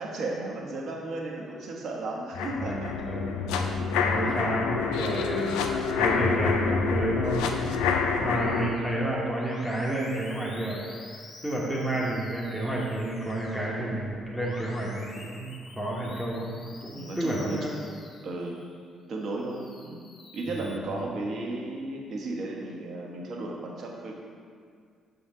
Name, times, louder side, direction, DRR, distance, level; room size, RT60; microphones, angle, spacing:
voice 1, 0.0-3.1 4.2-4.4 7.8-8.2 16.9-17.7 18.2-18.6 19.1-24.2, right 2 dB, 60° right, -1 dB, 1.0 m, -35 dB
sound 1, 2.3-8.7, left 5 dB, 75° left, 0.4 m, -27 dB
voice 2, 2.6-3.7 4.1-7.5 8.2-10.8 11.4-16.5 16.8-17.7 20.5-21.0, right 1 dB, 5° right, -5 dB, 1.2 m, -30 dB
Musical instrument, 8.3-18.7 19.2-20.8, left 2 dB, 50° left, 1.1 m, -48 dB
6.1 x 3.8 x 4.7 m, 2.1 s
hypercardioid pair, 50°, 0 cm